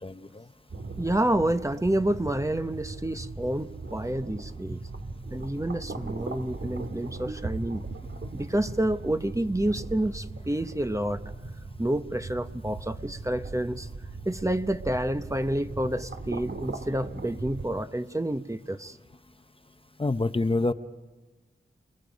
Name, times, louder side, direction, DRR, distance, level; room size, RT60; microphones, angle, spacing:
voice 1, 0.0-0.5 20.0-20.7, left 2 dB, 25° left, 10 dB, 0.8 m, -27 dB
sound 1, 0.7-17.7, right 3 dB, 65° right, 1.9 m, -39 dB
voice 2, 1.0-4.8 5.3-7.8 8.3-11.2 11.8-13.9 14.2-19.0, right 1 dB, 15° right, 9 dB, 0.9 m, -29 dB
30.0 x 21.0 x 5.2 m, 1.1 s
wide cardioid pair, 65°, 21 cm